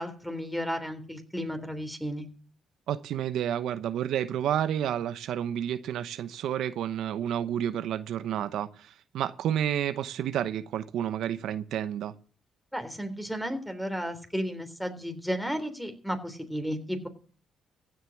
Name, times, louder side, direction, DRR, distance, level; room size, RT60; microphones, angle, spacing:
voice 1, 0.0-2.3 12.7-17.1, equal, ahead, 3.5 m, -33 dB
voice 2, 2.9-12.1, right 10 dB, 80° right, 0.9 m, -30 dB
16.0 x 8.0 x 7.1 m
cardioid pair, 90°, 0 cm